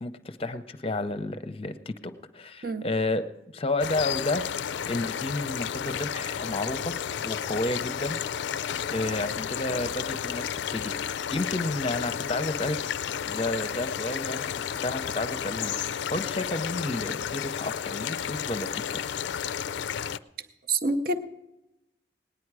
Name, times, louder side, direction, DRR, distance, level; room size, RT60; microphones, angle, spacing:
voice 1, 0.0-3.2 3.5-6.9 7.2-8.2 8.9-11.0 11.3-12.8 13.2-19.0, left 2 dB, 30° left, 10 dB, 0.6 m, -31 dB
sound 1, 3.8-20.2, left 8 dB, 70° left, 0.3 m, -32 dB
voice 2, 20.7-21.2, right 2 dB, 50° right, 7 dB, 0.7 m, -26 dB
18.5 x 9.9 x 4.7 m, 0.95 s
head